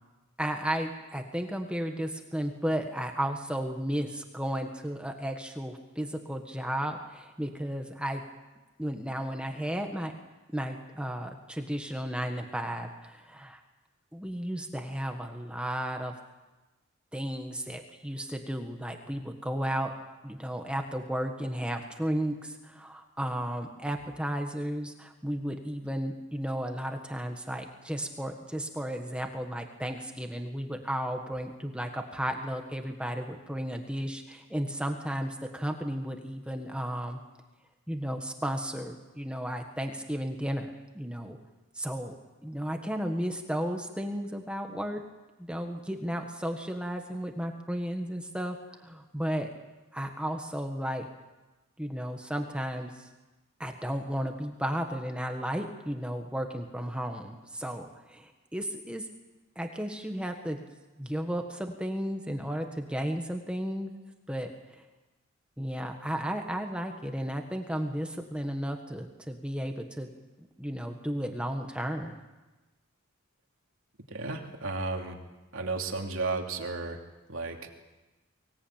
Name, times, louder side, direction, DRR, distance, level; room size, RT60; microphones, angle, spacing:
voice 1, 0.4-8.2 8.8-10.1 10.5-13.6 14.1-16.1 17.1-19.9 20.2-37.2 37.9-41.4 41.7-42.2 42.4-45.0 45.4-49.5 49.9-51.1 51.8-53.1 53.6-59.1 59.5-60.6 61.0-63.9 64.3-64.8 65.6-70.1 70.6-72.2, equal, 5° right, 4 dB, 1.5 m, -34 dB
voice 2, 74.1-75.2 75.5-77.0 77.3-77.6, right 3 dB, 70° right, 2 dB, 2.9 m, -33 dB
24.0 x 18.0 x 8.9 m, 1.1 s
head